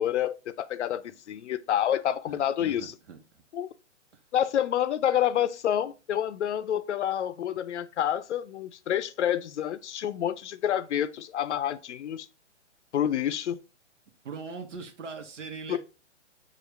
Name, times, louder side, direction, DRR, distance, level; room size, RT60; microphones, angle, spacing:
voice 1, 0.0-3.0 3.5-3.7 4.3-12.3 12.9-13.6 15.7-15.8, left 10 dB, 70° left, 0.5 m, -28 dB
voice 2, 2.3-3.2 14.2-15.8, right 5 dB, 75° right, 1.1 m, -40 dB
4.6 x 2.5 x 3.3 m
hypercardioid pair, 140°, 37 cm